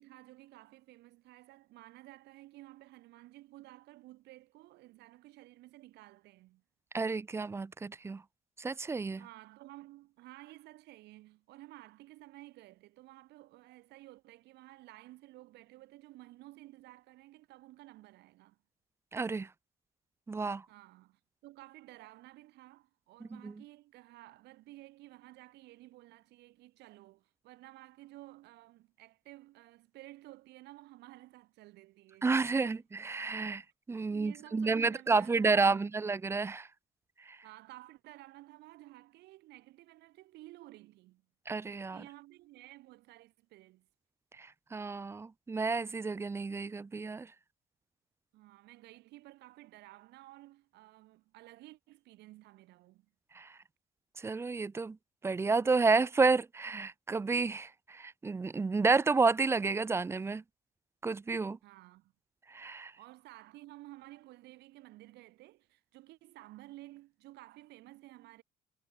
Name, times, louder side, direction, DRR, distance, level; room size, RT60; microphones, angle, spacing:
voice 1, 0.0-6.6 9.2-18.6 20.7-32.3 32.6-32.8 34.1-35.9 37.4-41.2 41.9-43.9 48.3-53.1 61.6-62.1 63.0-68.4, right 18 dB, 85° right, 6.6 m, -54 dB
voice 2, 6.9-8.2 8.6-9.2 19.1-19.5 20.3-20.6 23.2-23.5 32.2-33.6 33.9-36.7 37.3-37.4 41.5-42.0 44.4-47.3 53.3-53.6 54.2-55.0 55.2-60.4 61.0-61.6 62.5-62.9, right 4 dB, 15° right, 0.4 m, -30 dB
cardioid pair, 110°, 17 cm